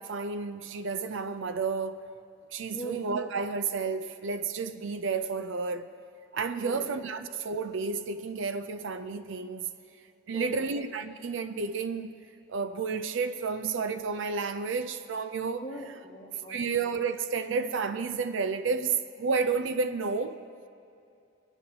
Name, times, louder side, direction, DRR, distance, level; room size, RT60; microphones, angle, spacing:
voice 1, 0.0-2.0 2.5-5.9 6.3-9.7 10.3-12.2 12.5-15.7 16.5-20.4, right 4 dB, 65° right, 0.4 m, -31 dB
voice 2, 2.7-3.0 6.6-6.9 10.3-10.7 15.6-16.6, equal, 25° left, 1.6 m, -41 dB
22.5 x 9.0 x 2.8 m
head